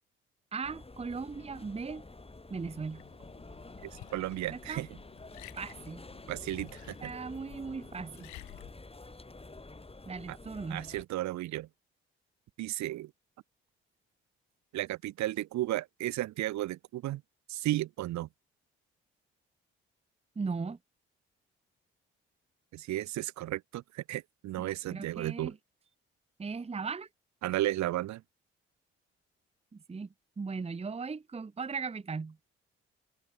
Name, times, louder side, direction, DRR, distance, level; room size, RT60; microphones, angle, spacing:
voice 1, 0.5-2.0 2.5-3.0 4.5-4.8 5.5-6.0 7.0-8.3 10.1-10.9 20.4-20.8 24.6-25.5 26.4-27.1 29.7-30.1 30.4-32.4, right 4 dB, 20° right, 0.8 m, -38 dB
sound 1, 0.6-11.0, left 2 dB, 20° left, 3.2 m, -49 dB
Liquid, 2.6-8.7, left 19 dB, 80° left, 2.5 m, -53 dB
voice 2, 3.8-4.9 6.3-7.1 10.3-10.4 10.7-11.7 12.6-13.1 14.7-17.2 17.5-18.3 22.7-25.5 27.4-28.2, right 15 dB, 75° right, 2.0 m, -34 dB
hypercardioid pair, 45°, 29 cm